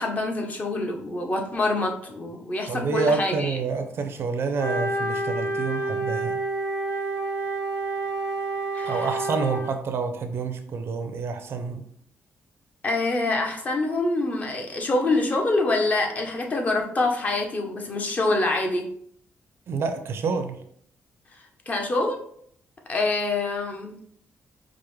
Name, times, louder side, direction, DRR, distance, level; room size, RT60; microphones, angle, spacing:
voice 1, 0.0-3.6 8.7-9.1 12.8-18.8 21.3-22.2 22.9-23.9, left 2 dB, 30° left, 2 dB, 0.6 m, -25 dB
voice 2, 2.7-6.4 8.8-11.8 19.7-20.6, right 4 dB, 55° right, 7 dB, 0.5 m, -28 dB
Wind instrument woodwind instrument, 4.5-9.8, right 2 dB, 75° left, 1.1 m, -28 dB
4.8 x 2.0 x 3.1 m, 0.65 s
cardioid pair, 125°, 5 cm